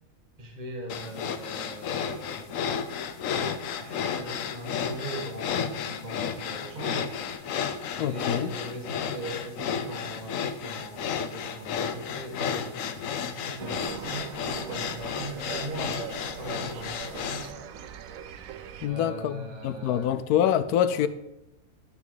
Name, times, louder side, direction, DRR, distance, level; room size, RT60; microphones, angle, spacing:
voice 1, 0.4-2.5 3.8-7.5 7.9-13.0 13.2-16.1 16.4-17.5 18.8-20.1 20.9-21.1, right 1 dB, 30° right, 1.6 m, -40 dB
sound 1, 0.9-17.5, left 7 dB, 70° left, 1.0 m, -32 dB
voice 2, 8.0-8.5 18.8-21.1, left 10 dB, 90° left, 1.1 m, -25 dB
sound 2, 13.6-18.9, right 8 dB, 70° right, 1.0 m, -40 dB
13.0 x 5.9 x 3.9 m
omnidirectional pair, 1.6 m